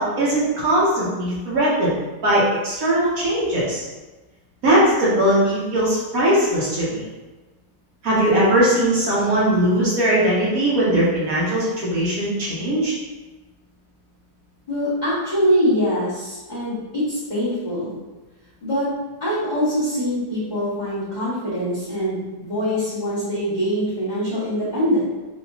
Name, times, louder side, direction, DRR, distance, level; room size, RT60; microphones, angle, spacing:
voice 1, 0.0-2.0 2.2-3.8 4.6-7.1 8.0-12.9, right 1 dB, 60° right, -7 dB, 1.4 m, -19 dB
voice 2, 14.7-17.9 18.6-18.9 19.2-25.0, equal, 25° left, -13 dB, 1.6 m, -23 dB
4.9 x 2.8 x 2.7 m, 1.2 s
omnidirectional pair, 1.9 m